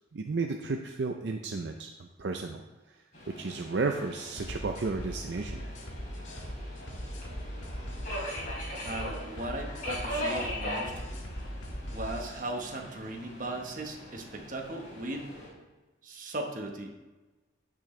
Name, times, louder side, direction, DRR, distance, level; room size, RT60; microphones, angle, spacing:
voice 1, 0.1-2.6 2.9-3.0 3.3-5.7, right 3 dB, 65° right, 4 dB, 0.5 m, -33 dB
Subway metro underground, 3.1-15.5, equal, 40° left, 3.4 m, -40 dB
sound 1, 4.4-12.4, equal, 80° left, 1.8 m, -40 dB
voice 2, 8.8-10.9 11.9-15.3 16.0-17.0, right 1 dB, 45° right, 2 dB, 1.2 m, -37 dB
15.0 x 6.2 x 3.2 m, 1.2 s
head